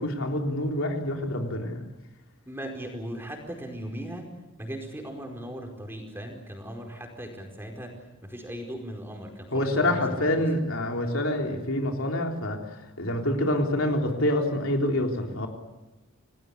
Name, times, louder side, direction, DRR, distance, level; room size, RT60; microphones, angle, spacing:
voice 1, 0.0-1.8 9.5-12.6 13.0-15.5, left 1 dB, 70° left, 2 dB, 3.7 m, -26 dB
voice 2, 2.5-4.3 4.6-7.9 8.2-10.5, equal, 10° right, 2 dB, 4.9 m, -38 dB
28.5 x 19.0 x 8.3 m, 1.0 s
head